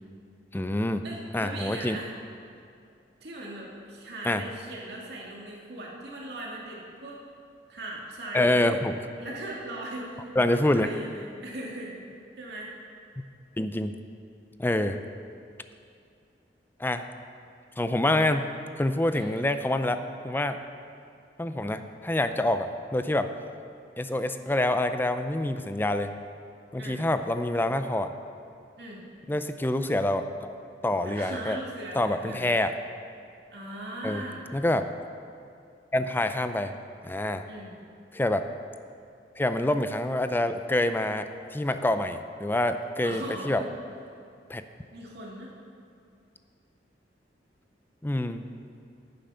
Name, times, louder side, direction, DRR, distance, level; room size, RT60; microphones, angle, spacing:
voice 1, 0.5-1.1 1.3-2.0 4.2-4.4 8.3-9.0 10.4-10.9 13.6-13.9 14.6-15.0 16.8-17.1 17.8-18.5 18.8-20.6 21.4-23.3 24.0-26.2 26.7-28.1 29.3-30.5 30.8-31.6 31.9-32.7 34.0-34.2 34.5-34.9 35.9-36.8 37.0-37.4 38.1-38.4 39.4-43.6 44.5-44.6 48.0-48.5, left 1 dB, 10° left, 9 dB, 0.4 m, -26 dB
voice 2, 1.0-2.1 3.2-7.2 7.7-8.7 9.2-12.0 12.4-12.7 19.1-19.5 26.8-27.0 28.8-29.0 31.0-32.4 33.5-34.4 37.5-37.7 43.0-43.7 44.9-45.5, right 1 dB, 65° right, -3 dB, 2.2 m, -39 dB
10.5 x 9.4 x 5.6 m, 2.5 s
head